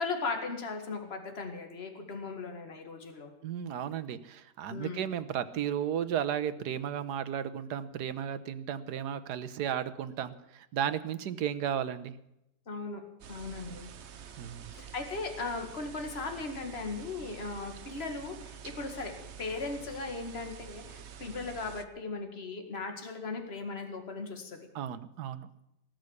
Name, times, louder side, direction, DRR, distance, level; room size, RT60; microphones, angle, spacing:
voice 1, 0.0-3.3 4.7-5.0 12.7-13.0 13.3-13.9 14.7-24.7, left 3 dB, 35° left, 5 dB, 2.2 m, -37 dB
voice 2, 3.4-12.2 14.4-14.7 24.7-25.5, right 9 dB, 70° right, 12 dB, 1.4 m, -34 dB
sound 1, 13.2-21.9, right 7 dB, 50° right, 0.9 m, -48 dB
18.5 x 6.5 x 9.7 m, 0.84 s
omnidirectional pair, 1.9 m